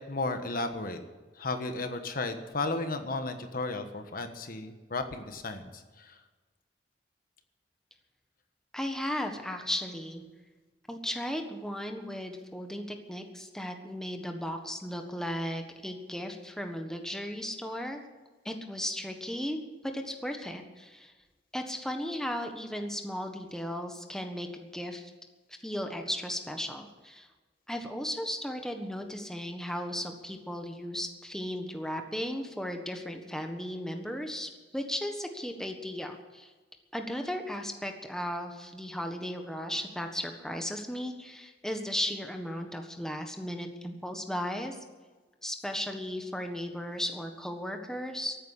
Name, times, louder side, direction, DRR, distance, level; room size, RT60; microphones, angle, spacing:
voice 1, 0.1-1.0 1.4-6.2, left 3 dB, 55° left, 7 dB, 1.4 m, -34 dB
voice 2, 8.7-10.2 10.9-18.0 18.4-21.1 21.5-25.1 25.6-27.3 27.7-36.5 36.9-44.8 45.4-48.4, equal, 5° left, 4 dB, 1.4 m, -36 dB
14.5 x 9.4 x 10.0 m, 1.3 s
head